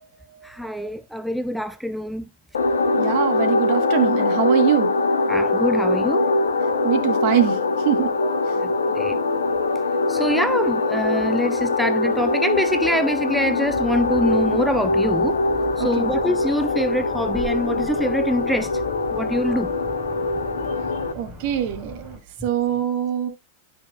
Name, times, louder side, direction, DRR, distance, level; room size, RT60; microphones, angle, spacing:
voice 1, 0.4-2.3 5.3-6.3 8.2-9.2 10.1-15.4 15.8-18.8 19.1-19.7 22.4-22.5, equal, ahead, 0.4 m, -25 dB
sound 1, 2.5-21.1, left 3 dB, 70° left, 0.9 m, -22 dB
voice 2, 3.0-4.9 6.8-7.6 7.8-8.1 15.8-16.1 21.1-23.3, right 11 dB, 45° right, 1.5 m, -23 dB
sound 2, 13.7-22.2, left 1 dB, 25° right, 3.9 m, -39 dB
11.5 x 5.7 x 2.5 m
figure-of-eight pair, 90°, 0 cm